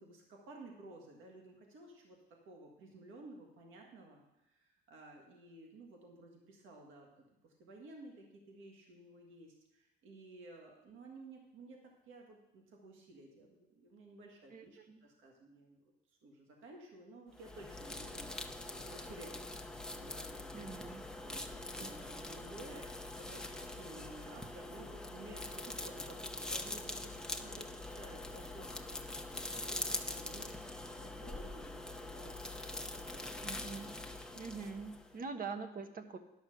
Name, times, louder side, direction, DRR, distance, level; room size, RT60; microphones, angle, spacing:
voice 1, 0.0-7.1 7.4-15.8 16.1-18.4 18.7-20.5 21.2-29.0 29.3-33.5, right 2 dB, 85° right, 1 dB, 1.7 m, -55 dB
voice 2, 14.5-15.1 20.5-21.0 21.8-22.3 33.4-33.9 34.3-36.2, right 4 dB, 45° right, 7 dB, 1.1 m, -44 dB
sound 1, 17.3-35.2, left 2 dB, 5° left, 0.8 m, -44 dB
11.0 x 6.2 x 6.4 m, 0.91 s
cardioid pair, 90°, 20 cm